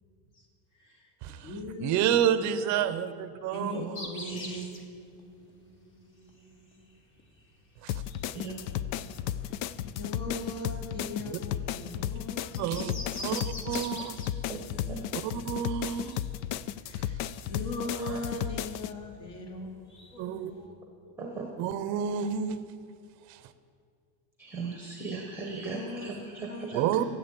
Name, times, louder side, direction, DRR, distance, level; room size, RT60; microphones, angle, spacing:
voice 1, 0.7-2.2 2.6-2.9 3.5-6.9 9.4-9.5 9.9-13.4 13.9-14.2 16.8-17.2 17.5-19.7 20.1-20.7 21.0-21.1 22.3-22.4 25.7-26.1 26.5-26.8, left 2 dB, 50° left, 1 dB, 2.6 m, -41 dB
voice 2, 1.8-4.8 7.8-8.0 12.6-12.9 13.2-14.2 15.2-16.2 17.0-17.1 20.2-20.5 21.6-22.6 23.3-23.4 26.7-27.1, right 9 dB, 35° right, 11 dB, 0.6 m, -30 dB
sound 1, 3.9-20.7, left 1 dB, 25° left, 1.2 m, -48 dB
sound 2, 7.9-18.9, left 11 dB, 90° left, 0.6 m, -34 dB
voice 3, 8.3-9.0 14.5-14.6 14.9-15.0 17.9-18.2 21.2-21.5 24.4-26.8, right 4 dB, 5° right, 0 dB, 0.8 m, -38 dB
14.0 x 7.5 x 8.9 m, 2.3 s
cardioid pair, 180°, 49 cm